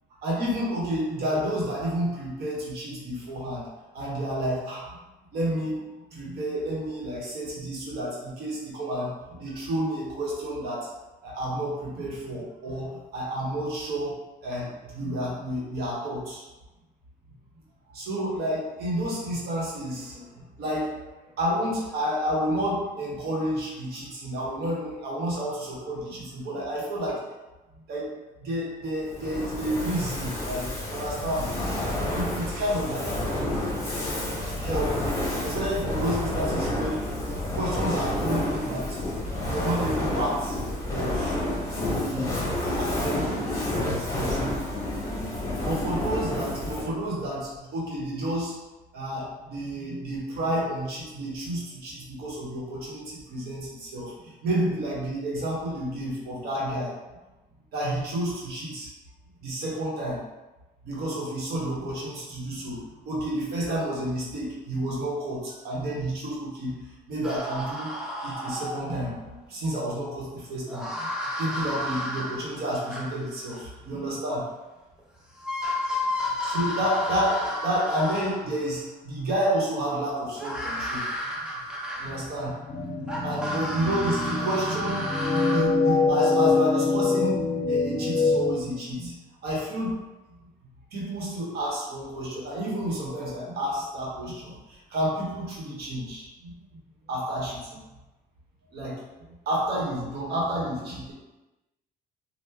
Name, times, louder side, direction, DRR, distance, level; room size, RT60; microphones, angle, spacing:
voice 1, 0.2-3.6 3.9-4.8 5.3-10.9 11.2-16.4 17.9-21.1 21.4-27.2 27.9-28.1 28.4-31.5 32.1-33.3 34.6-35.0 35.4-37.2 37.5-39.0 39.5-40.6 40.9-41.4 41.8-44.5 45.6-48.5 48.9-56.9 57.7-58.9 59.4-60.2 60.8-66.7 67.1-68.0 68.2-71.1 71.4-74.5 76.4-81.1 82.0-82.6 82.9-87.4 87.7-90.0 90.3-90.4 90.9-96.8 97.1-97.8 98.7-99.0 99.3-101.1, right 1 dB, 70° right, -5 dB, 1.3 m, -30 dB
Fire, 29.0-47.0, left 1 dB, 20° left, 1.2 m, -29 dB
sound 1, 67.2-69.1 70.7-73.7 75.0-75.1 75.4-78.6 80.4-82.5 83.1-85.7, left 1 dB, 5° right, 0.6 m, -32 dB
sound 2, 82.7-88.5, left 3 dB, 35° left, 0.8 m, -25 dB
3.7 x 2.4 x 3.0 m, 1.1 s
cardioid pair, 110°, 17 cm